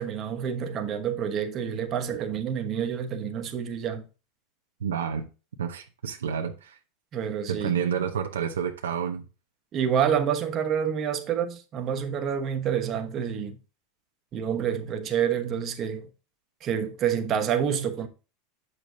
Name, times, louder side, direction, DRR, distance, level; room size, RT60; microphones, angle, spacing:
voice 1, 0.0-4.0 7.1-7.7 9.7-13.6 14.3-16.1 16.6-18.1, right 8 dB, 40° right, 1.1 m, -28 dB
voice 2, 4.8-5.3 5.6-6.8 7.5-9.3, right 7 dB, 85° right, 0.7 m, -29 dB
7.2 x 6.7 x 2.6 m
hypercardioid pair, 95°, 0 cm